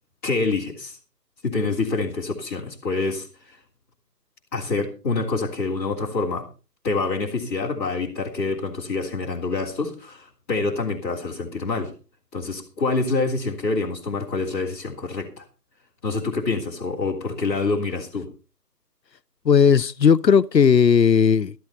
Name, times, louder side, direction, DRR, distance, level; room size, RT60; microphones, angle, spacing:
voice 1, 0.2-1.0 1.4-3.6 4.5-6.5 6.8-11.9 12.3-15.4 16.0-18.3, left 3 dB, 10° left, 1.9 m, -26 dB
voice 2, 19.4-21.5, left 6 dB, 85° left, 0.8 m, -16 dB
13.5 x 13.0 x 4.3 m
figure-of-eight pair, 160°, 49 cm